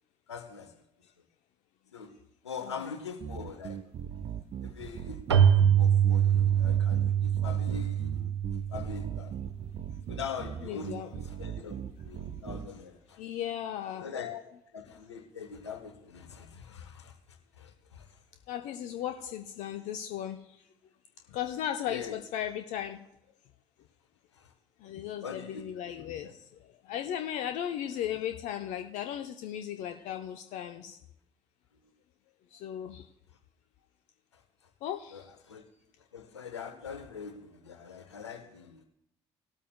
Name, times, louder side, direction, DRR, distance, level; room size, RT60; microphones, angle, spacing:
voice 1, 0.3-0.8 1.9-2.2 2.4-3.8 4.6-8.1 8.7-9.3 10.1-13.2 13.9-14.4 14.7-18.2 21.8-22.2 24.3-24.5 25.2-25.7 26.2-26.3 34.3-34.4 35.1-35.6 36.1-38.9, left 6 dB, 85° left, 1.1 m, -43 dB
sound 1, 3.2-12.7, right 8 dB, 45° right, 0.8 m, -40 dB
Keyboard (musical), 5.3-9.8, right 9 dB, 85° right, 0.5 m, -25 dB
voice 2, 10.6-11.2 13.2-14.1 18.5-20.6 21.3-23.0 24.8-31.0 32.5-33.1 34.8-35.3, left 10 dB, 60° left, 0.7 m, -36 dB
18.0 x 12.5 x 2.2 m
figure-of-eight pair, 50°, 14 cm